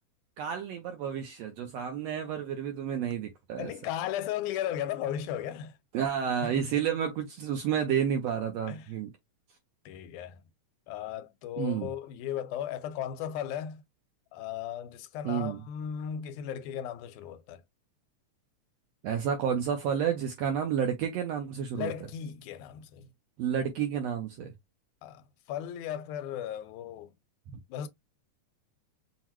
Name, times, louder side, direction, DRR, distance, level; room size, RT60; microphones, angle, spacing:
voice 1, 0.4-3.7 5.9-9.1 11.6-11.9 15.2-15.6 19.0-21.9 23.4-24.5 27.5-27.6, right 8 dB, 80° right, 1.5 m, -30 dB
voice 2, 3.6-5.8 6.4-6.7 8.7-8.9 9.9-10.4 10.9-13.8 14.3-17.6 21.7-23.1 25.0-25.2 25.5-27.1 27.7-27.9, left 10 dB, 80° left, 2.0 m, -36 dB
5.8 x 2.1 x 3.0 m
omnidirectional pair, 3.5 m